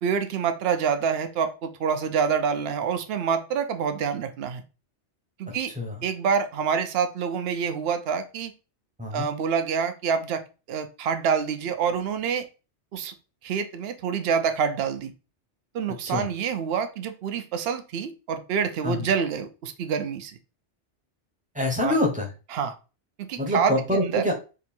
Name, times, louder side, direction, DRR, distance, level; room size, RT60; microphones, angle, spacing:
voice 1, 0.0-4.6 5.4-5.7 6.0-8.5 9.1-10.4 10.7-12.5 12.9-13.1 13.4-15.1 15.7-20.4 21.8-22.0 22.5-22.7 23.2-24.2, right 6 dB, 65° right, 9 dB, 0.8 m, -27 dB
voice 2, 5.5-6.0 9.0-9.3 16.0-16.3 18.8-19.1 21.5-22.3 23.4-24.3, left 1 dB, 5° right, 1 dB, 0.9 m, -26 dB
3.7 x 2.7 x 4.3 m, 0.32 s
omnidirectional pair, 1.2 m